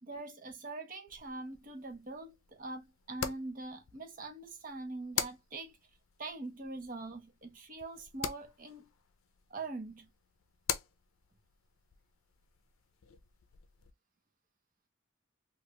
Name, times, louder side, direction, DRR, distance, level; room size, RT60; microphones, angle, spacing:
voice 1, 0.0-5.8 6.2-8.9 9.5-10.1, right 3 dB, 40° right, 0.7 m, -43 dB
sound 1, 1.1-13.9, left 9 dB, 80° left, 0.5 m, -44 dB
3.2 x 2.4 x 2.8 m
head